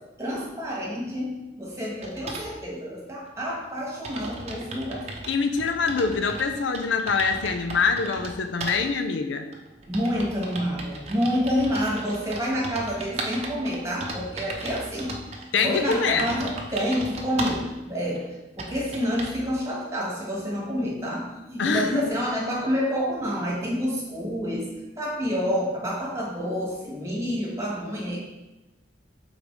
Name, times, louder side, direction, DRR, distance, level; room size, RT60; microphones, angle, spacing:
voice 1, 0.2-5.1 9.9-15.2 15.6-24.7 25.0-28.2, equal, 15° right, -4 dB, 1.5 m, -28 dB
sound 1, 2.0-2.5 3.4-3.5 3.7-3.8 4.0-6.5 6.7-8.3 8.6-8.8 9.5-17.7 18.2-18.3 18.6-19.4, right 2 dB, 35° right, 0.8 m, -36 dB
voice 2, 5.3-9.4 15.5-16.3 21.6-22.0, left 5 dB, 80° left, 7 dB, 0.5 m, -24 dB
5.2 x 4.0 x 4.6 m, 1.0 s
head